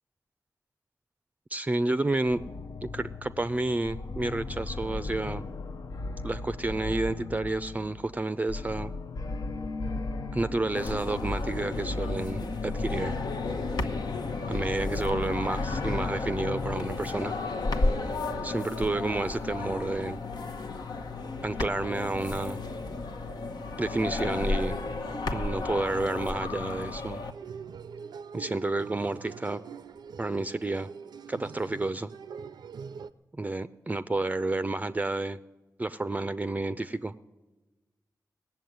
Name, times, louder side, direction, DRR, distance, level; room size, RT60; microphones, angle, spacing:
voice 1, 1.5-2.4 2.9-5.4 6.2-8.9 10.3-13.1 14.5-17.3 18.4-20.2 21.4-22.6 23.8-24.8 25.3-27.2 28.3-29.6 30.2-30.9 31.3-32.1 33.4-35.4 35.8-37.1, right 2 dB, 20° right, 12 dB, 0.4 m, -30 dB
sound 1, 2.3-17.9, left 3 dB, 65° left, 0.6 m, -36 dB
sound 2, 10.8-27.3, left 3 dB, 80° left, 1.0 m, -33 dB
sound 3, 27.3-33.1, right 6 dB, 85° right, 0.5 m, -44 dB
18.0 x 7.2 x 9.3 m, 1.1 s
cardioid pair, 70°, 7 cm